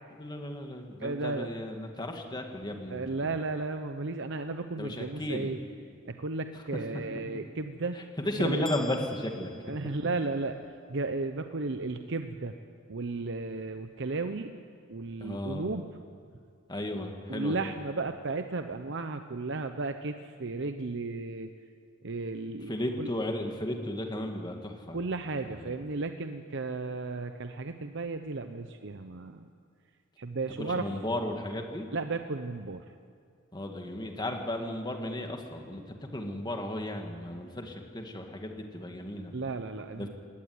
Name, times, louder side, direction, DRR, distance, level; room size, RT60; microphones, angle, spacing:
voice 1, 0.1-3.3 4.8-5.6 8.2-9.5 15.2-15.7 16.7-17.7 22.7-25.0 25.4-25.7 30.6-31.9 33.5-35.8 36.1-39.3 40.0-40.1, left 1 dB, 20° left, 3 dB, 2.1 m, -34 dB
voice 2, 1.0-1.5 2.9-5.6 6.0-8.0 8.4-8.7 9.6-10.6 10.9-12.6 12.9-14.5 14.9-15.9 17.3-21.5 22.0-23.1 24.9-29.5 30.2-30.9 31.9-32.9 39.3-40.1, right 3 dB, 65° right, 8 dB, 0.8 m, -34 dB
sound 1, 8.6-10.6, left 3 dB, 5° left, 1.4 m, -47 dB
19.0 x 17.5 x 9.6 m, 2.2 s
head